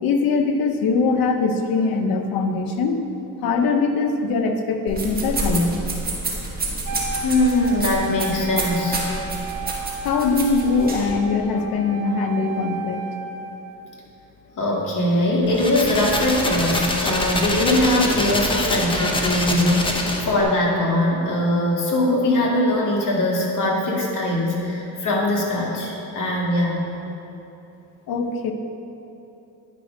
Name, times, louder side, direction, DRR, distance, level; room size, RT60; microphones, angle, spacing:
voice 1, 0.0-3.0 3.4-5.8 10.0-13.0 28.1-28.5, left 4 dB, 80° left, 5 dB, 0.9 m, -22 dB
sound 1, 4.9-11.1, right 3 dB, 25° right, 1.6 m, -29 dB
Wind instrument woodwind instrument, 6.8-13.8, right 3 dB, 60° right, 0.7 m, -33 dB
voice 2, 7.2-9.0 14.6-26.9, left 1 dB, 60° left, -3 dB, 2.0 m, -21 dB
sound 2, 15.4-20.4, left 1 dB, 15° left, 0.8 m, -25 dB
9.7 x 5.1 x 5.0 m, 2.9 s
cardioid pair, 110°, 35 cm